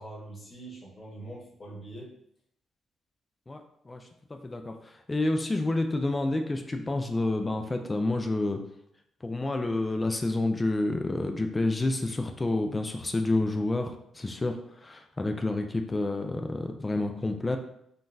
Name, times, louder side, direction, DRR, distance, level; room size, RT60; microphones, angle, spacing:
voice 1, 0.0-2.1, right 2 dB, 35° left, -6 dB, 1.3 m, -43 dB
voice 2, 4.3-8.6 9.2-17.6, left 2 dB, 20° left, 5 dB, 0.3 m, -29 dB
3.7 x 2.3 x 2.6 m, 0.73 s
cardioid pair, 90°, 0 cm